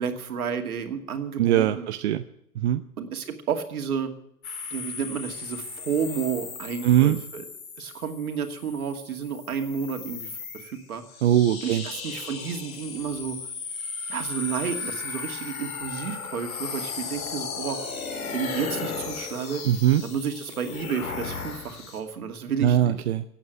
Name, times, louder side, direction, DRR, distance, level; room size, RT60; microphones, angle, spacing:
voice 1, 0.0-1.9 3.0-4.1 4.7-7.4 7.8-11.0 11.6-13.4 14.1-17.8 18.3-19.6 20.0-23.0, right 7 dB, 70° right, 5 dB, 2.5 m, -31 dB
voice 2, 1.4-2.2 2.6-2.8 6.8-7.2 11.2-11.8 19.7-20.0 22.6-23.2, right 11 dB, 45° right, 9 dB, 0.8 m, -21 dB
sound 1, 4.4-22.0, left 5 dB, 60° left, 4.0 m, -36 dB
16.5 x 8.7 x 9.1 m, 0.74 s
hypercardioid pair, 130°, 46 cm